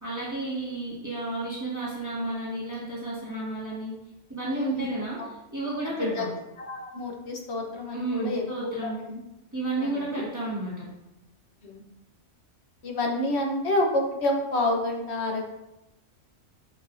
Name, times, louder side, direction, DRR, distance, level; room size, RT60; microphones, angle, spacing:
voice 1, 0.0-3.9 4.3-5.2 5.5-6.3 7.9-9.0 9.5-10.8, right 2 dB, 15° right, -6 dB, 1.5 m, -32 dB
voice 2, 4.5-4.9 5.2-5.3 6.0-6.3 6.6-9.2 9.8-10.2 11.6-11.8 12.8-15.5, left 1 dB, 65° left, 1 dB, 1.3 m, -29 dB
6.5 x 6.5 x 2.7 m, 0.94 s
omnidirectional pair, 1.2 m